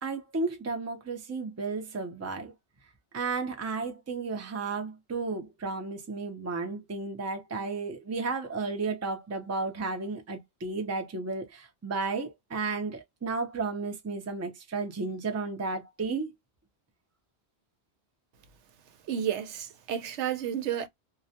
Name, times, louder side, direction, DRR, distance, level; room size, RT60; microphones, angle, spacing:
voice 1, 0.0-2.5 3.1-16.3, right 4 dB, 20° right, 0.4 m, -33 dB
voice 2, 19.1-20.9, right 9 dB, 85° right, 0.9 m, -31 dB
2.3 x 2.1 x 2.7 m
omnidirectional pair, 1.2 m